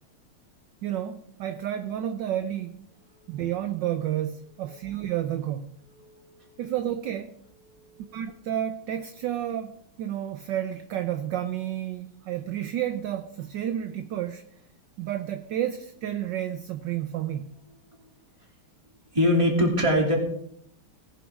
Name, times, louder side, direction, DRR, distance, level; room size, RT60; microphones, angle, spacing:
voice 1, 0.8-2.7 3.3-5.7 6.6-7.3 8.1-14.4 15.0-17.5, right 11 dB, 70° right, 9 dB, 1.2 m, -31 dB
voice 2, 5.9-6.7 7.7-8.3 19.1-20.2, left 1 dB, 15° right, -1 dB, 2.9 m, -25 dB
18.5 x 11.0 x 3.6 m, 0.70 s
omnidirectional pair, 2.4 m